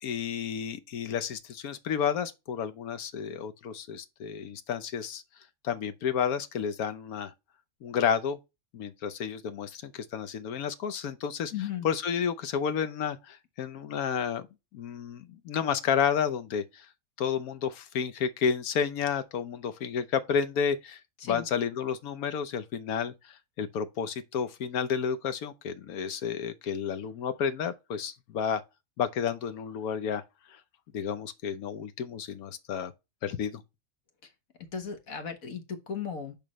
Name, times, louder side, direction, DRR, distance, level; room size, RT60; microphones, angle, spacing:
voice 1, 0.0-5.2 5.6-7.3 7.8-8.4 8.7-11.5 11.8-14.4 14.7-16.9 17.2-28.6 29.0-30.2 30.5-30.6 30.9-32.9 33.2-33.6, left 7 dB, 90° left, 1.3 m, -31 dB
voice 2, 11.5-11.9 21.2-21.4 34.7-36.3, left 7 dB, 70° left, 1.7 m, -35 dB
10.5 x 3.7 x 3.1 m
omnidirectional pair, 1.5 m